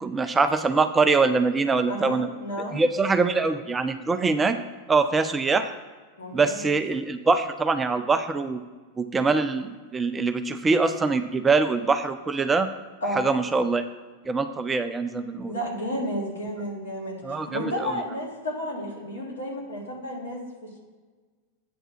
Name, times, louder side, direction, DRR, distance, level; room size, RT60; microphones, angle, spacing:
voice 1, 0.0-2.3 2.7-4.6 4.9-5.7 6.3-8.6 9.0-12.7 13.2-13.8 14.3-15.5 17.2-17.9, right 4 dB, 15° right, 9 dB, 0.4 m, -23 dB
voice 2, 1.9-2.8 6.2-6.7 13.0-13.2 15.5-20.8, equal, 65° left, -3 dB, 2.4 m, -32 dB
8.6 x 3.5 x 5.7 m, 1.4 s
figure-of-eight pair, 90°, 0 cm